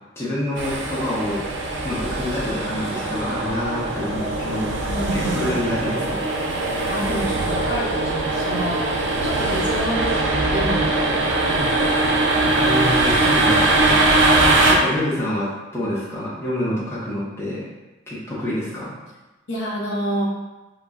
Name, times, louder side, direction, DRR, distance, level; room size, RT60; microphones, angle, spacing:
voice 1, 0.2-4.7 5.1-6.2 12.6-14.0 14.7-17.7 18.1-18.9, left 1 dB, 15° left, -8 dB, 0.6 m, -27 dB
sound 1, 0.6-14.7, right 2 dB, 75° right, 0.4 m, -21 dB
voice 2, 4.9-5.6 6.8-8.8 9.2-12.0 19.5-20.2, equal, 75° left, -4 dB, 0.6 m, -28 dB
2.2 x 2.0 x 3.5 m, 1.1 s
head